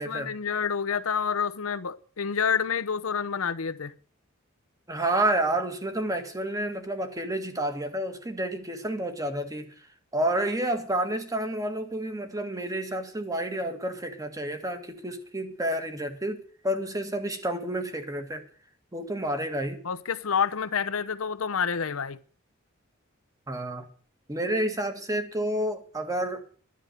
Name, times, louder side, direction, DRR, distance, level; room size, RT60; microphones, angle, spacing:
voice 1, 0.0-3.9 19.8-22.2, left 6 dB, 85° left, 0.8 m, -28 dB
voice 2, 4.9-9.7 10.1-18.4 18.9-19.8 23.5-23.9 24.3-26.4, right 1 dB, 15° right, 1.7 m, -30 dB
11.5 x 11.0 x 6.6 m
head